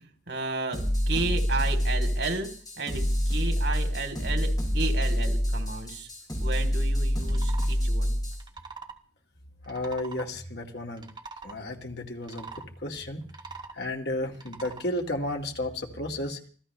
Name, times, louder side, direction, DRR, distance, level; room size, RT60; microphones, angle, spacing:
voice 1, 0.0-2.5 2.8-6.1 6.4-8.2, right 3 dB, 85° right, 4 dB, 3.6 m, -33 dB
sound 1, 0.7-8.4, equal, 20° left, 6.4 m, -26 dB
sound 2, 7.2-7.7 8.3-9.0 9.6-10.3 10.9-11.6 12.2-12.7 13.2-13.8 14.3-14.9, right 4 dB, 25° right, 1.9 m, -43 dB
voice 2, 9.7-11.1 11.4-13.2 13.7-16.4, left 1 dB, 70° left, 2 dB, 2.3 m, -33 dB
25.5 x 16.0 x 3.3 m, 0.44 s
head